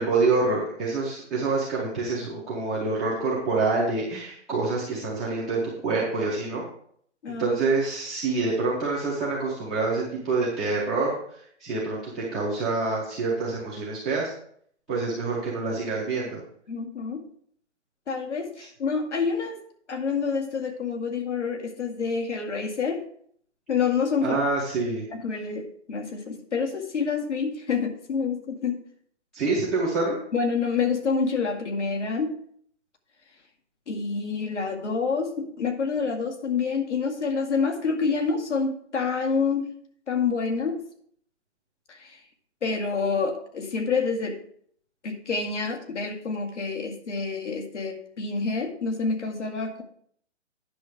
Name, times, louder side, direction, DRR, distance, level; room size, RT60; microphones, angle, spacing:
voice 1, 0.0-6.6 7.4-14.3 14.9-16.4 24.2-25.0 29.3-30.2, right 3 dB, ahead, -11 dB, 0.4 m, -26 dB
voice 2, 16.7-17.2 18.1-19.6 19.9-23.0 23.7-24.4 25.1-28.8 30.3-32.3 33.9-39.7 40.1-40.8 41.9-42.2 42.6-44.4 45.0-49.8, left 5 dB, 80° left, 3 dB, 2.2 m, -27 dB
10.0 x 6.2 x 4.8 m, 0.63 s
hypercardioid pair, 155°, 35 cm